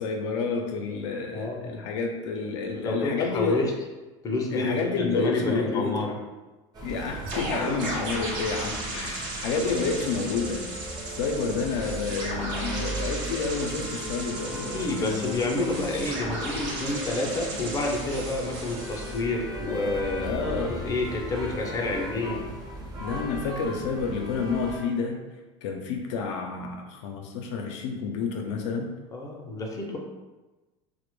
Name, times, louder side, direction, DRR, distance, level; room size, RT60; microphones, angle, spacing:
voice 1, 0.0-3.7 4.5-6.0 6.8-10.6 11.0-15.4 20.2-20.8 23.0-25.2 25.6-28.9, left 4 dB, 75° left, 2 dB, 0.4 m, -30 dB
voice 2, 1.3-1.8 2.7-3.7 4.2-6.2 14.4-20.3 20.6-22.4 29.1-30.0, left 2 dB, 20° left, 0 dB, 0.5 m, -29 dB
sound 1, 6.7-24.8, right 1 dB, 25° right, 0.6 m, -37 dB
sound 2, 7.2-19.2, right 1 dB, 65° right, 0.8 m, -35 dB
2.1 x 2.0 x 2.9 m, 1.2 s
supercardioid pair, 100°, 15 cm